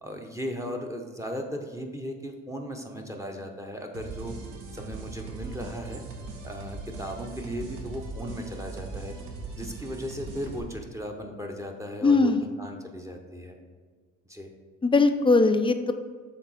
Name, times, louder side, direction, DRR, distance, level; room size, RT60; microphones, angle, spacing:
voice 1, 0.0-4.3 4.7-6.0 6.4-9.1 9.5-12.3 12.6-13.6 14.3-14.5, equal, 10° right, 3 dB, 0.8 m, -36 dB
sound 1, 3.9-10.6, right 3 dB, 70° right, 1.1 m, -39 dB
voice 2, 12.0-12.4 14.8-15.9, left 3 dB, 15° left, 8 dB, 0.5 m, -20 dB
6.9 x 3.6 x 4.1 m, 1.5 s
supercardioid pair, 65°, 33 cm